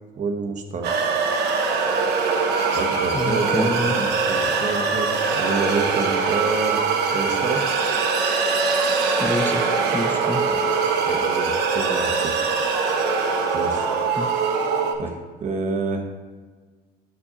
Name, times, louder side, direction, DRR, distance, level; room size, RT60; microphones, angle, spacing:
voice 1, 0.2-0.9 2.7-7.6 10.5-10.6 11.0-12.4 13.5-13.9 15.0-16.1, right 4 dB, 45° right, 4 dB, 0.9 m, -28 dB
sound 1, 0.8-14.9, right 4 dB, 80° right, 0.8 m, -22 dB
voice 2, 3.1-4.0 9.2-10.5 14.2-14.3, left 2 dB, 10° left, 5 dB, 0.4 m, -27 dB
10.0 x 4.6 x 2.9 m, 1.4 s
cardioid pair, 110°, 17 cm